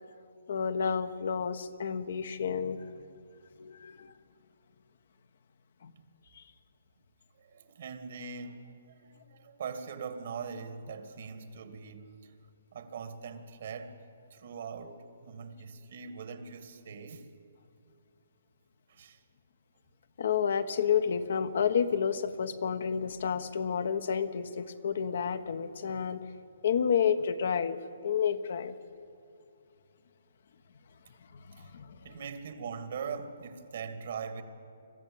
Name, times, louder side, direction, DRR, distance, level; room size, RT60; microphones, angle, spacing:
voice 1, 0.5-2.9 3.6-4.1 5.8-5.9 6.3-6.4 20.2-26.3 26.6-28.7 31.3-32.0, left 7 dB, 60° left, 9 dB, 1.1 m, -30 dB
voice 2, 7.4-12.3 12.7-14.0 14.3-17.3 18.9-19.2 31.6-31.7 32.0-34.4, right 6 dB, 60° right, 8 dB, 2.1 m, -41 dB
22.5 x 13.5 x 8.7 m, 2.5 s
hypercardioid pair, 145°, 0 cm